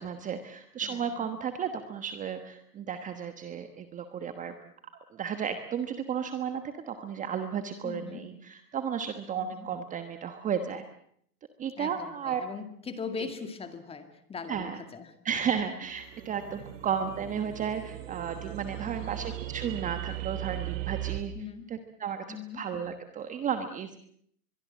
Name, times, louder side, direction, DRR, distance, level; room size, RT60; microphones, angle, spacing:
voice 1, 0.0-4.5 5.1-10.8 11.6-12.4 13.2-13.3 14.5-14.8 15.2-21.3 21.7-24.0, right 7 dB, 15° right, 9 dB, 1.2 m, -33 dB
voice 2, 7.8-8.2 9.4-9.7 11.8-15.1 16.6-16.7 18.8-19.1 21.3-21.7 22.3-22.6, left 5 dB, 10° left, 9 dB, 2.2 m, -40 dB
sound 1, 15.9-21.2, right 15 dB, 55° right, 2.6 m, -38 dB
23.5 x 22.5 x 7.5 m, 0.66 s
hypercardioid pair, 135°, 47 cm